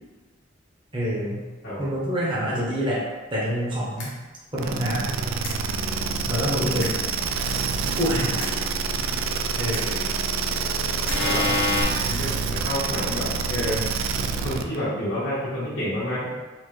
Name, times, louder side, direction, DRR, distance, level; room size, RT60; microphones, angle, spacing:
voice 1, 0.9-1.4 1.8-3.0 3.3-4.1 4.5-5.1 6.3-7.0 7.9-8.4 9.6-10.0, equal, 25° right, -6 dB, 0.8 m, -26 dB
sound 1, 4.0-4.1 5.4-5.5 6.8-6.9 8.4-8.5 9.7-9.8 11.1-11.8, left 2 dB, 70° left, 1.0 m, -25 dB
sound 2, 4.6-14.8, right 5 dB, 85° right, 0.3 m, -27 dB
voice 2, 12.6-13.8 14.4-16.3, equal, 85° left, -11 dB, 1.5 m, -29 dB
4.1 x 2.5 x 3.1 m, 1.2 s
head